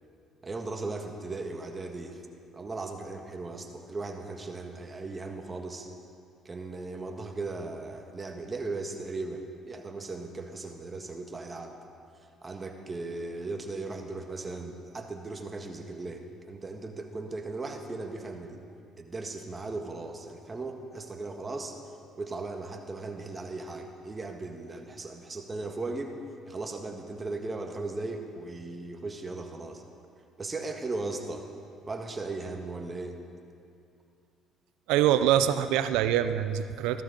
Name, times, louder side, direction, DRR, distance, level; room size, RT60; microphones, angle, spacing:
voice 1, 0.4-2.2 2.5-5.9 6.4-11.7 12.4-18.6 19.0-21.8 22.2-26.1 26.4-29.8 30.4-31.5 31.9-33.2, right 3 dB, 30° right, 4 dB, 1.5 m, -37 dB
voice 2, 34.9-37.0, right 11 dB, 80° right, 12 dB, 0.5 m, -24 dB
15.0 x 13.0 x 4.0 m, 2.4 s
supercardioid pair, 70°, 0 cm